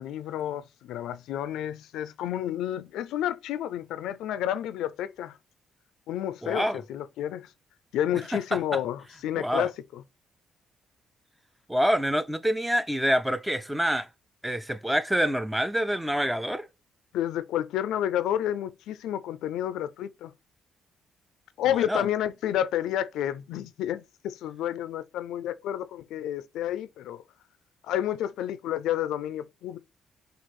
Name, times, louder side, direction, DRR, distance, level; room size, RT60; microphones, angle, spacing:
voice 1, 0.0-5.4 6.1-7.5 7.9-10.0 17.1-20.3 21.6-27.2 27.8-29.8, left 11 dB, 85° left, 0.4 m, -30 dB
voice 2, 6.4-6.8 8.5-8.8 9.3-9.7 11.7-14.1 14.4-16.7 21.9-22.0, equal, 5° right, 0.5 m, -26 dB
6.2 x 2.4 x 3.1 m
cardioid pair, 90°, 0 cm